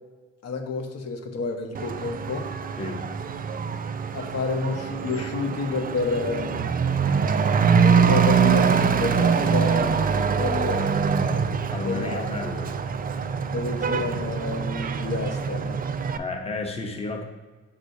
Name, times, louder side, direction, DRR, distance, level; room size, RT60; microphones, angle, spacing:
voice 1, 0.4-2.5 4.1-6.6 7.8-10.9 11.8-12.3 13.5-15.8, left 4 dB, 55° left, 4 dB, 1.0 m, -29 dB
Truck / Accelerating revving vroom, 1.7-16.2, right 6 dB, 30° right, 0.4 m, -24 dB
voice 2, 11.7-12.7 16.2-17.2, left 3 dB, 20° left, 3 dB, 0.8 m, -32 dB
6.7 x 6.1 x 2.7 m, 1.4 s
cardioid pair, 90°, 30 cm